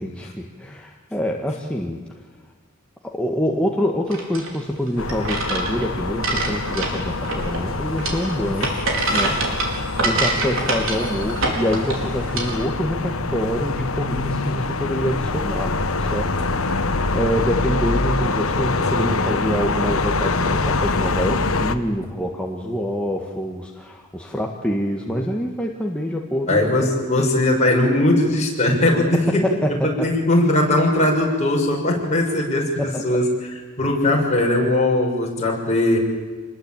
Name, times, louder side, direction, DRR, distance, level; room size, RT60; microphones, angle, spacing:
voice 1, 0.0-2.0 3.0-26.7 29.1-30.1 32.8-33.2 33.8-33.9, equal, 5° left, 0 dB, 1.7 m, -26 dB
sound 1, 4.1-12.6, right 2 dB, 65° right, 4.7 m, -26 dB
sound 2, 5.0-21.8, left 3 dB, 75° left, 1.4 m, -25 dB
voice 2, 18.9-19.2 26.5-36.0, left 1 dB, 35° left, -1 dB, 6.3 m, -20 dB
27.5 x 21.0 x 9.1 m, 1.4 s
head